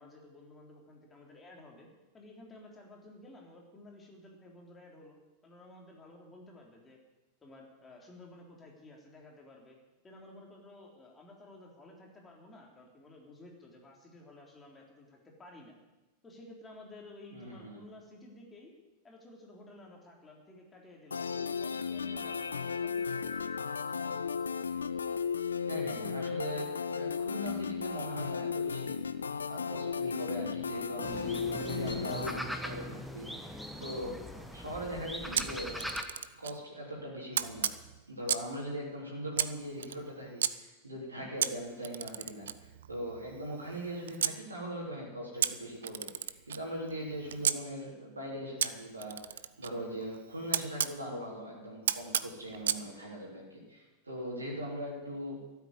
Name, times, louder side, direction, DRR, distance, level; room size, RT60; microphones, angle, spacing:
voice 1, 0.0-1.9 2.1-5.2 5.4-7.0 7.4-9.8 10.0-15.8 16.2-18.7 19.0-23.6, left 2 dB, 15° left, 0 dB, 3.5 m, -53 dB
voice 2, 17.3-17.8 25.7-29.0 29.5-35.9 36.4-37.7 38.1-55.4, equal, 80° right, -3 dB, 3.5 m, -40 dB
sound 1, 21.1-32.4, left 6 dB, 75° left, 0.5 m, -35 dB
sound 2, 31.0-36.0, equal, ahead, 1.2 m, -40 dB
Camera, 35.4-36.6 37.3-38.6 39.3-40.5 41.4-44.4 45.4-47.6 48.6-51.0 51.9-52.8, right 9 dB, 65° right, 0.5 m, -34 dB
13.5 x 8.2 x 9.8 m, 1.1 s
figure-of-eight pair, 90°, 0 cm